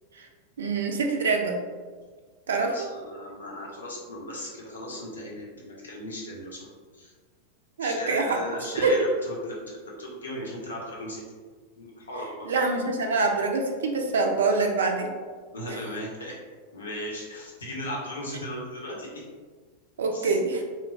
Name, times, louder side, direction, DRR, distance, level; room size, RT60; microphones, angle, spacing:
voice 1, 0.6-1.6 2.5-2.9 7.8-8.4 8.8-8.9 12.5-15.1 20.0-20.6, right 3 dB, 65° right, 3 dB, 0.3 m, -25 dB
voice 2, 2.6-7.1 7.8-11.2 11.8-12.5 15.5-16.4 16.7-19.3 20.1-20.4, left 1 dB, 70° left, -3 dB, 0.6 m, -37 dB
3.0 x 2.0 x 2.5 m, 1.5 s
figure-of-eight pair, 90°, 0 cm